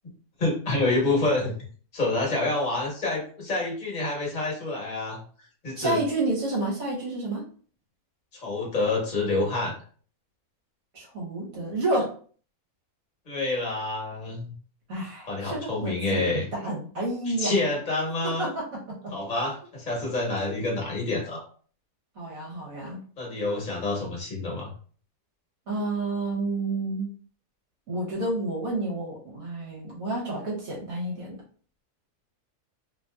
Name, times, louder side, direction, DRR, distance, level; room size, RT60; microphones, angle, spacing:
voice 1, 0.4-1.5 1.9-5.2 5.6-6.0 8.4-9.7 13.3-14.5 15.3-16.4 17.3-18.5 19.1-21.4 23.2-24.7, left 2 dB, 35° left, -2 dB, 1.1 m, -27 dB
voice 2, 5.8-7.4 10.9-12.1 14.9-17.5 18.4-19.1 22.2-23.0 25.7-27.1 27.9-31.4, right 2 dB, 70° right, -3 dB, 1.4 m, -30 dB
3.0 x 2.6 x 2.3 m, 0.44 s
omnidirectional pair, 1.6 m